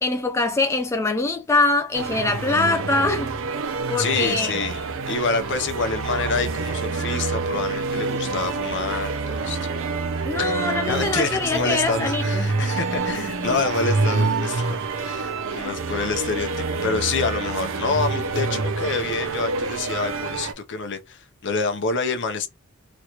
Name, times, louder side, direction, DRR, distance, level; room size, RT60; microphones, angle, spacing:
voice 1, 0.0-3.3 3.9-4.5 10.2-12.5 15.5-15.7, left 3 dB, 10° left, 0.4 m, -23 dB
sound 1, 1.9-20.5, right 3 dB, 60° right, 0.5 m, -27 dB
voice 2, 4.0-9.7 10.4-10.5 10.9-22.5, left 4 dB, 55° left, 0.7 m, -27 dB
3.1 x 2.9 x 2.4 m
head